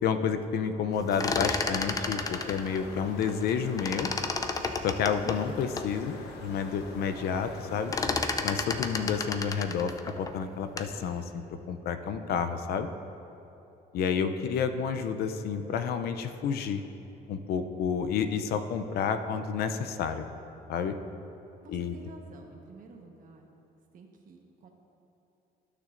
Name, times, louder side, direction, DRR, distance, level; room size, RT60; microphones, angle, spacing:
voice 1, 0.0-4.1 4.8-7.9 8.4-12.9 13.9-16.8 17.3-20.3 20.7-20.9 21.7-21.9, left 6 dB, 65° left, 8 dB, 0.5 m, -30 dB
sound 1, 1.0-3.5 3.8-5.9 6.4-6.5 6.8-7.2 7.5-11.0, left 3 dB, 20° left, 0.4 m, -32 dB
sound 2, 1.5-9.3, left 3 dB, 85° left, 1.0 m, -45 dB
voice 2, 21.6-23.5 23.9-24.7, right 3 dB, 55° right, 2 dB, 1.2 m, -51 dB
15.0 x 6.5 x 2.6 m, 2.9 s
cardioid pair, 110°, 17 cm